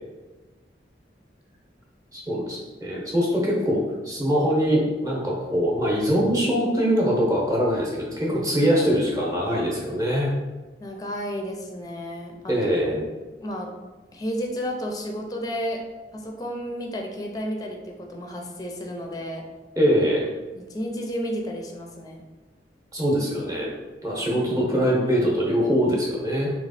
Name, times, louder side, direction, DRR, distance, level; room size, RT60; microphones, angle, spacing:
voice 1, 2.1-10.3 12.5-13.0 19.8-20.2 22.9-23.7 24.0-26.5, equal, 20° right, -4 dB, 0.8 m, -23 dB
voice 2, 10.8-12.5 12.8-12.9 13.4-13.7 14.1-15.8 16.1-19.4 20.5-22.2, equal, 20° left, 1 dB, 0.5 m, -32 dB
3.4 x 3.0 x 4.1 m, 1.2 s
head